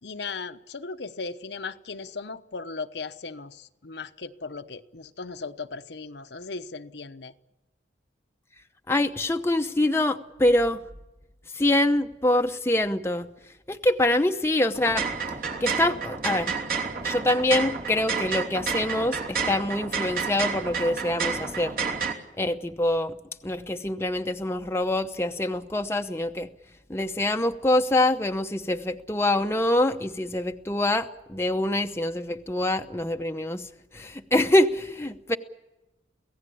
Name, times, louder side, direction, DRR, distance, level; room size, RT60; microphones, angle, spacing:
voice 1, 0.0-7.3, left 4 dB, 70° left, 8 dB, 1.0 m, -37 dB
voice 2, 8.9-10.8 11.5-13.3 13.7-15.1 15.6-16.6 17.0-21.7 22.4-23.2 23.4-26.5 26.9-33.7 33.9-35.4, left 1 dB, 15° left, 5 dB, 0.8 m, -25 dB
sound 1, 14.7-22.1, right 5 dB, 50° right, 3.0 m, -30 dB
25.0 x 17.0 x 8.5 m, 1.0 s
head